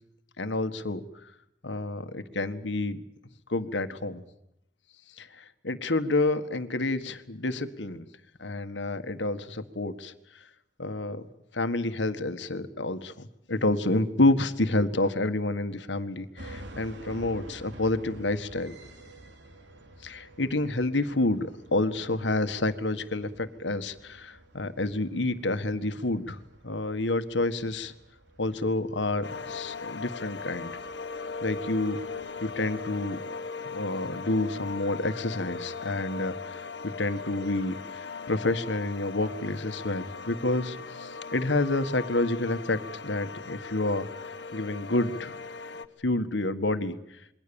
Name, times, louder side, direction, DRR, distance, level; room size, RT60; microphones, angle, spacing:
voice 1, 0.4-1.0 1.6-3.0 3.5-4.2 5.2-8.0 8.4-10.1 10.8-11.2 11.5-18.7 20.0-26.4 26.6-27.9 28.4-30.7 31.4-32.0 32.4-33.2 33.7-44.1 44.5-45.4 46.0-47.2, left 2 dB, 90° left, 10 dB, 1.7 m, -29 dB
sound 1, 16.4-32.7, right 1 dB, 80° right, 3.5 m, -50 dB
sound 2, 29.2-45.9, left 4 dB, 70° left, 1.4 m, -39 dB
27.5 x 22.5 x 7.1 m, 0.79 s
head